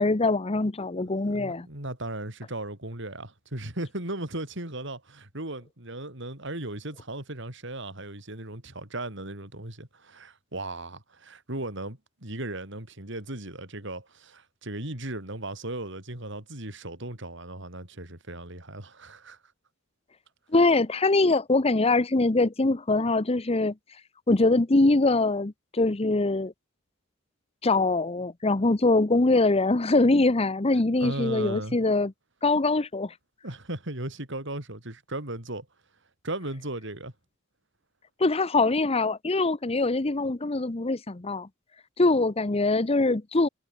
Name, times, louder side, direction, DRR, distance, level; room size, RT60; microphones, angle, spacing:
voice 1, 0.0-1.7 20.5-23.7 24.3-26.5 27.6-32.1 32.4-33.1 38.2-41.5 42.0-43.5, left 2 dB, 30° left, 0.9 m, -23 dB
voice 2, 1.2-19.4 31.0-31.8 33.4-35.7 36.2-37.1, right 1 dB, 65° right, 5.5 m, -36 dB
head